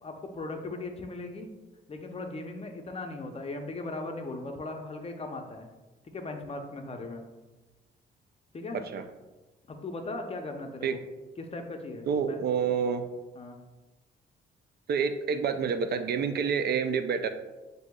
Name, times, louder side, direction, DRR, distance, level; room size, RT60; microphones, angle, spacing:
voice 1, 0.0-1.5 1.9-5.7 6.0-7.2 8.5-8.8 9.7-11.0 11.4-12.4 13.4-13.6, left 2 dB, 30° left, 4 dB, 0.6 m, -38 dB
voice 2, 8.7-9.0 10.8-11.0 12.1-13.1 14.9-17.3, right 6 dB, 55° right, 9 dB, 0.4 m, -28 dB
7.4 x 2.7 x 2.3 m, 1.1 s
cardioid pair, 90°, 20 cm